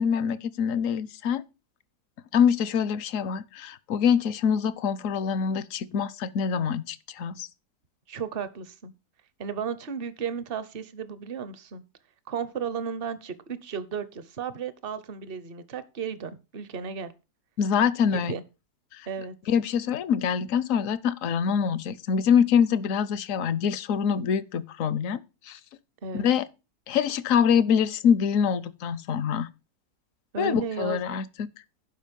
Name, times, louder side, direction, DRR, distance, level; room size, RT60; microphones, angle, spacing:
voice 1, 0.0-1.4 2.3-7.5 17.6-18.3 18.9-19.1 19.5-25.2 25.5-25.6 26.1-26.5 26.9-29.5 30.4-31.5, left 7 dB, 65° left, 0.9 m, -25 dB
voice 2, 8.1-8.9 9.4-11.8 12.3-17.1 18.1-18.4 19.1-19.3 26.0-26.3 30.3-31.0, right 7 dB, 45° right, 0.8 m, -34 dB
11.5 x 5.1 x 5.2 m
omnidirectional pair, 1.8 m